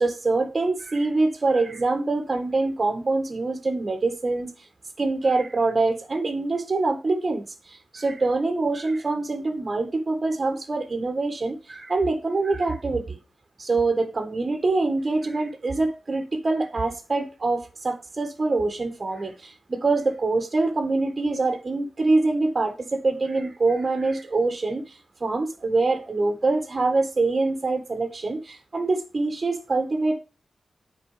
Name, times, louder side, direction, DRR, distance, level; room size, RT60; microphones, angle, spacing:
voice 1, 0.0-4.5 5.0-13.2 13.6-30.2, right 3 dB, 35° right, 1.8 m, -25 dB
8.9 x 4.8 x 5.0 m
wide cardioid pair, 135°, 0 cm